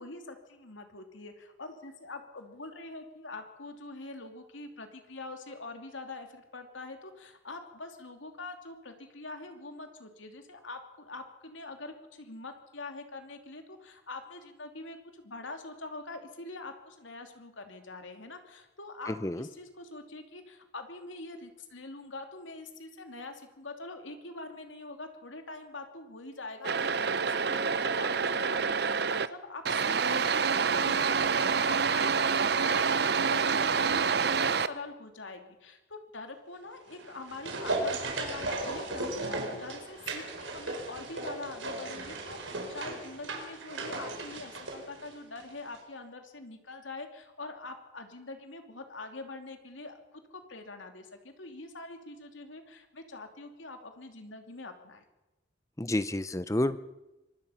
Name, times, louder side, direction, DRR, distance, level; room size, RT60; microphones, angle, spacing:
voice 1, 0.0-55.0, left 3 dB, 85° left, 5 dB, 2.8 m, -44 dB
voice 2, 19.1-19.5 55.8-56.8, left 1 dB, 15° left, 14 dB, 0.6 m, -29 dB
sound 1, 26.6-29.3 29.7-34.7, right 5 dB, 60° right, 0.8 m, -27 dB
sound 2, 36.9-45.5 45.7-45.8, right 2 dB, 85° right, 4.5 m, -36 dB
25.0 x 20.0 x 5.8 m, 0.99 s
head